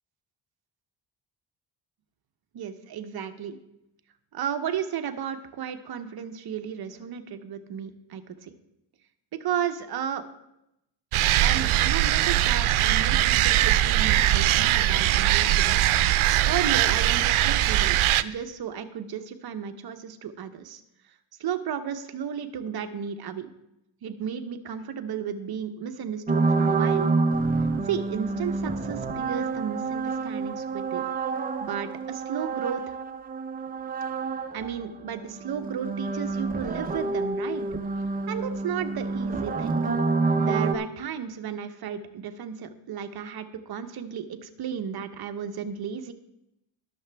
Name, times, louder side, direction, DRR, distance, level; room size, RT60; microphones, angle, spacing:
voice 1, 2.5-3.6 4.3-8.5 9.4-10.2 11.4-15.8 16.1-20.8 21.4-23.5 24.0-27.1 27.8-31.1 31.6-33.0 34.5-37.7 38.3-39.9 40.4-46.1, right 8 dB, 50° right, 8 dB, 0.8 m, -33 dB
sound 1, 11.1-18.2, right 13 dB, 90° right, 0.6 m, -21 dB
sound 2, 26.3-34.9 35.1-40.8, right 4 dB, 20° right, 0.4 m, -28 dB
20.0 x 6.7 x 3.4 m, 0.86 s
wide cardioid pair, 175°, 48 cm